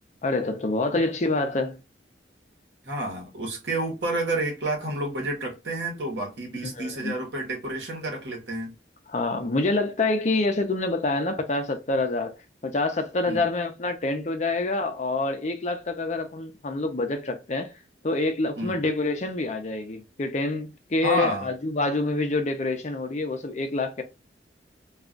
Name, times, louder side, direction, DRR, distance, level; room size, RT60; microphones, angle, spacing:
voice 1, 0.2-1.8 6.6-7.1 9.1-12.4 12.6-17.7 18.0-24.0, left 2 dB, 40° left, 0.5 m, -27 dB
voice 2, 2.8-8.7 13.3-13.5 18.6-18.8 21.0-21.5, right 1 dB, 70° right, 1.1 m, -30 dB
2.4 x 2.2 x 3.7 m
head